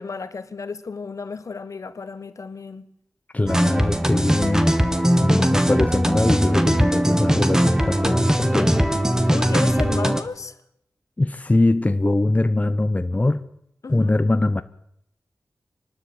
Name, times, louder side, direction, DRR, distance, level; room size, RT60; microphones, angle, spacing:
voice 1, 0.0-2.9 9.3-10.5 13.8-14.1, left 4 dB, 60° left, 1.4 m, -33 dB
voice 2, 3.3-4.8 5.2-9.0 11.2-13.4 13.9-14.6, left 2 dB, 25° left, 0.9 m, -22 dB
sound 1, 3.5-10.2, equal, 10° right, 1.7 m, -20 dB
26.5 x 12.5 x 8.7 m
wide cardioid pair, 70°, 6 cm